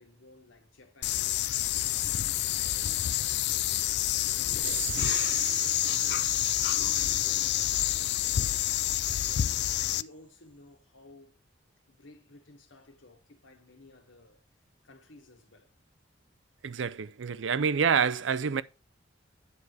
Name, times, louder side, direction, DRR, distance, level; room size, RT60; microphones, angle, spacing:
voice 1, 0.0-4.9 5.2-7.8 8.2-11.4 11.9-14.4 14.8-15.7, left 2 dB, 85° left, 1.8 m, -56 dB
sound 1, 1.0-10.0, left 13 dB, 60° left, 0.4 m, -28 dB
sound 2, 4.6-9.4, right 2 dB, 10° right, 1.0 m, -39 dB
voice 2, 16.6-18.6, right 6 dB, 70° right, 0.5 m, -27 dB
9.5 x 4.8 x 4.7 m
head